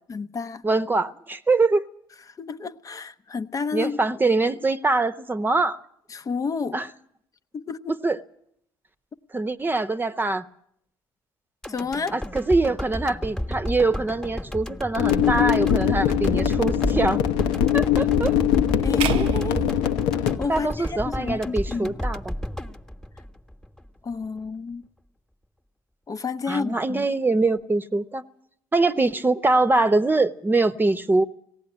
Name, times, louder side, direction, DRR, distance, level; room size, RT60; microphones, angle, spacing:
voice 1, 0.1-0.6 2.3-4.0 6.1-6.8 7.5-8.0 11.7-12.2 18.8-19.7 20.1-22.0 24.0-24.9 26.1-27.1, left 5 dB, 35° left, 0.8 m, -30 dB
voice 2, 0.6-1.9 3.7-5.8 6.7-6.9 8.0-8.2 9.3-10.5 12.1-17.2 17.7-18.3 20.5-22.3 26.5-28.2 28.7-31.2, right 3 dB, 20° right, 0.9 m, -23 dB
sound 1, 11.6-23.9 24.2-24.3, left 1 dB, 5° left, 1.3 m, -32 dB
sound 2, 15.0-20.4, left 10 dB, 80° left, 1.0 m, -22 dB
sound 3, 19.0-21.3, right 7 dB, 70° right, 0.7 m, -31 dB
18.0 x 16.0 x 9.9 m
supercardioid pair, 65°, 10 cm